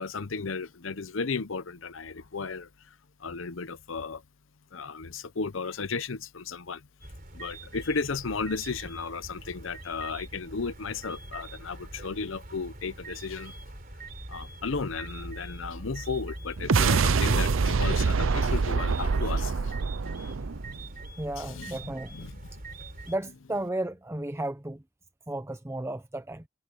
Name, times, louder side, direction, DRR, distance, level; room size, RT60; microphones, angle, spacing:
voice 1, 0.0-2.9 3.2-4.2 4.7-6.8 7.3-13.6 14.3-19.7 21.4-22.5, left 4 dB, 75° left, 0.8 m, -34 dB
sound 1, 7.0-23.1, right 2 dB, 45° right, 3.8 m, -43 dB
sound 2, 16.6-21.1, right 4 dB, 80° right, 0.6 m, -25 dB
voice 2, 21.2-22.1 23.1-24.8 25.3-26.4, right 1 dB, 15° right, 0.7 m, -33 dB
head